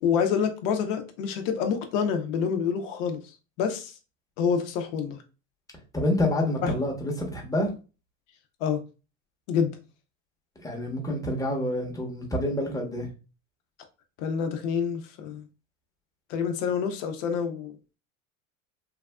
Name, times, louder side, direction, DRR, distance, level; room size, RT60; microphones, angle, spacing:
voice 1, 0.0-3.2 3.6-3.9 4.4-5.2 6.6-6.7 8.6-8.8 9.5-9.8 14.2-15.4 16.3-17.8, left 7 dB, 70° left, 0.7 m, -27 dB
voice 2, 5.9-7.7 10.6-13.1, left 1 dB, 10° left, 0.9 m, -27 dB
3.3 x 2.3 x 2.2 m
supercardioid pair, 100°, 39 cm